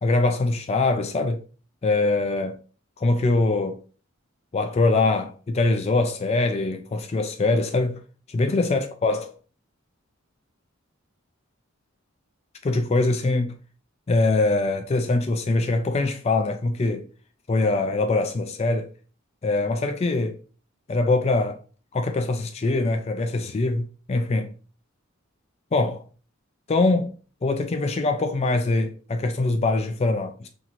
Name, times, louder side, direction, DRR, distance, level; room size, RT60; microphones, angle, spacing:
voice 1, 0.0-1.4 1.8-2.6 3.0-3.8 4.5-8.0 8.3-9.3 12.6-13.6 14.1-17.0 17.5-18.9 19.4-20.4 20.9-21.6 21.9-24.5 25.7-26.0 26.7-27.1 27.4-30.5, left 2 dB, 30° left, 0.3 m, -23 dB
5.7 x 2.9 x 2.5 m
head